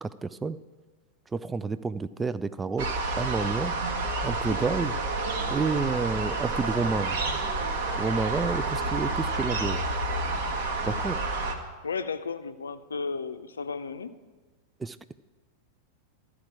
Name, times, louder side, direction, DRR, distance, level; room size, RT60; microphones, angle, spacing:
voice 1, 0.0-0.6 1.3-3.7 4.2-5.0 5.5-7.2 8.0-9.8 10.8-11.2 14.8-15.1, right 4 dB, 15° right, 15 dB, 0.3 m, -30 dB
sound 1, 2.8-11.5, right 3 dB, 50° right, 1.2 m, -29 dB
voice 2, 11.8-14.1, left 5 dB, 70° left, 10 dB, 0.5 m, -34 dB
13.0 x 4.9 x 8.5 m, 1.3 s
figure-of-eight pair, 90°, 0 cm